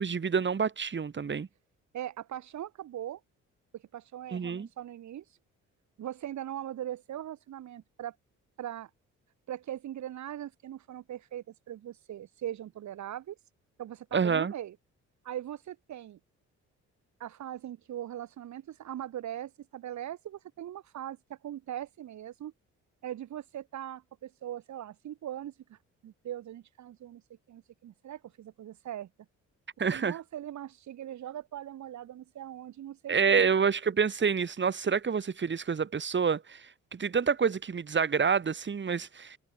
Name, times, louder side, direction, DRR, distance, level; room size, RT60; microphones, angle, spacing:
voice 1, 0.0-1.5 4.3-4.7 14.1-14.5 29.8-30.2 33.1-39.4, right 6 dB, 40° right, 3.1 m, -28 dB
voice 2, 1.9-3.2 3.7-5.4 6.0-8.2 8.6-8.9 9.5-13.4 13.8-14.8 15.2-16.2 17.2-22.5 23.0-25.8 26.0-27.2 27.5-29.1 29.9-33.5, right 11 dB, 70° right, 2.8 m, -40 dB
cardioid pair, 90°, 30 cm